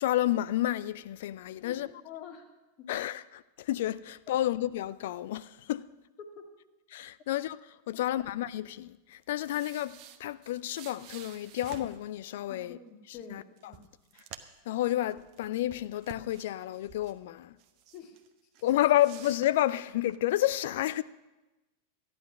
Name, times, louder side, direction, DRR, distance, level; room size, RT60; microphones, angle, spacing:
voice 1, 0.0-1.9 2.9-5.9 6.9-12.8 13.3-13.7 14.7-17.6 18.6-21.0, left 14 dB, 55° left, 0.4 m, -30 dB
voice 2, 1.6-2.5 2.8-2.9 6.2-6.5 7.9-8.0 12.5-13.9 17.9-18.2, left 6 dB, 35° left, 2.1 m, -47 dB
sound 1, 9.1-12.0 13.1-13.2 13.6-14.7 15.0-17.2 17.6-18.3 18.5-20.2, right 10 dB, 40° right, 1.0 m, -50 dB
14.0 x 10.0 x 6.0 m
figure-of-eight pair, 90°, 0 cm